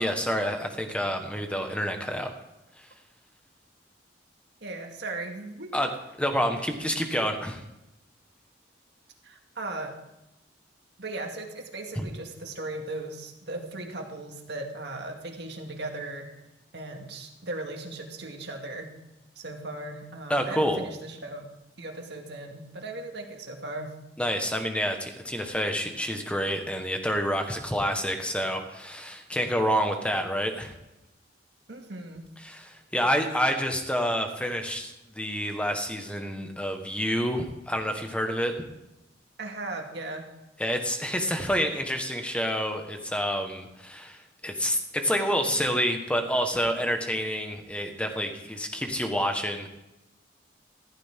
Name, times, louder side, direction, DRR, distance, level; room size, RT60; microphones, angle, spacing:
voice 1, 0.0-2.3 5.7-5.9 6.2-7.6 11.9-12.1 20.3-20.8 24.2-30.7 32.4-38.5 40.6-49.7, equal, 5° left, 5 dB, 1.4 m, -28 dB
voice 2, 4.6-5.7 9.2-9.9 11.0-16.3 16.7-18.9 19.4-21.4 21.8-23.9 31.7-32.2 39.4-40.2, right 2 dB, 65° right, 2 dB, 2.1 m, -37 dB
15.0 x 14.5 x 3.7 m, 0.94 s
head